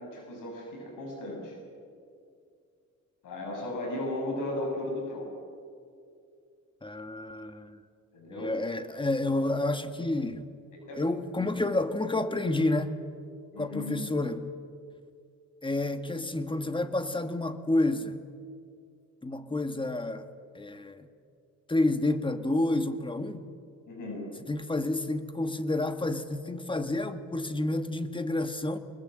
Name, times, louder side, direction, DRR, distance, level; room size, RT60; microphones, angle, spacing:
voice 1, 0.0-1.6 3.2-5.3 8.1-8.6 10.9-11.0 13.5-14.0 23.9-24.2, left 1 dB, 80° left, 0 dB, 6.5 m, -35 dB
voice 2, 6.8-7.8 8.3-10.5 10.9-13.0 13.6-14.5 15.6-18.2 19.2-20.3 20.5-21.1 21.7-23.5 24.5-28.8, left 2 dB, 15° left, 9 dB, 1.5 m, -29 dB
24.0 x 21.0 x 7.6 m, 2.3 s
cardioid pair, 110°, 31 cm